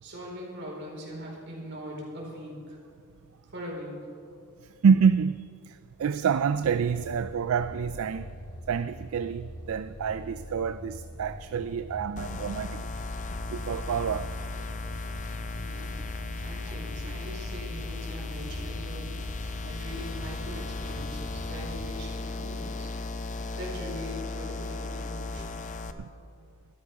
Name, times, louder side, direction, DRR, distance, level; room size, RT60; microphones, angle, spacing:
voice 1, 0.0-2.8 3.5-3.9 15.5-16.0 16.4-19.1 19.6-22.9 23.5-25.6, equal, 55° right, 4.4 m, -41 dB
voice 2, 4.8-8.3 8.7-12.9 13.5-14.3 26.0-26.1, right 6 dB, 70° right, 0.4 m, -27 dB
sound 1, 6.6-22.0, equal, 90° left, 1.8 m, -43 dB
sound 2, 12.2-25.9, left 3 dB, 35° left, 0.6 m, -36 dB
13.0 x 12.5 x 5.9 m
head